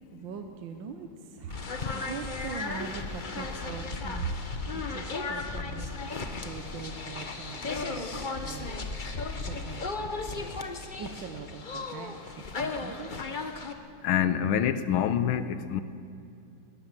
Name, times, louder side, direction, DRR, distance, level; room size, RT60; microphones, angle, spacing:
voice 1, 0.1-1.6 1.9-4.3 4.7-5.9 6.4-8.7 9.5-10.6 11.0-13.1, right 6 dB, 70° right, 6 dB, 1.6 m, -41 dB
sound 1, 1.5-13.7, left 3 dB, 35° left, 0.8 m, -35 dB
voice 2, 14.0-15.8, left 9 dB, 85° left, 12 dB, 1.7 m, -26 dB
20.5 x 18.5 x 7.4 m, 2.5 s
omnidirectional pair, 2.3 m